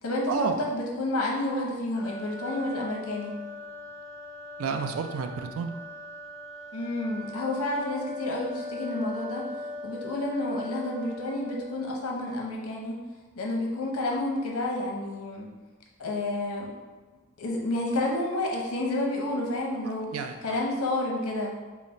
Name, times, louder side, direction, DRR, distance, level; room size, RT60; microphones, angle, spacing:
voice 1, 0.0-3.3 6.7-9.5 9.8-13.0 13.4-15.5 16.0-16.7 17.4-20.1 20.4-21.5, left 1 dB, 75° left, -1 dB, 0.7 m, -30 dB
sound 1, 1.9-11.9, left 2 dB, 25° left, 1.2 m, -40 dB
voice 2, 4.6-5.7 20.1-20.6, right 5 dB, 70° right, 6 dB, 0.4 m, -30 dB
3.9 x 2.1 x 4.2 m, 1.3 s
head